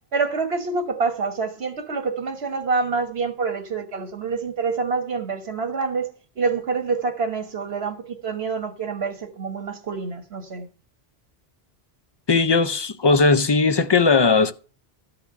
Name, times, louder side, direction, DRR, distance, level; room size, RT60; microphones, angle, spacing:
voice 1, 0.1-10.7, right 4 dB, 75° right, 1.7 m, -27 dB
voice 2, 12.3-14.5, left 4 dB, 40° left, 0.3 m, -18 dB
13.0 x 4.8 x 6.7 m
omnidirectional pair, 1.1 m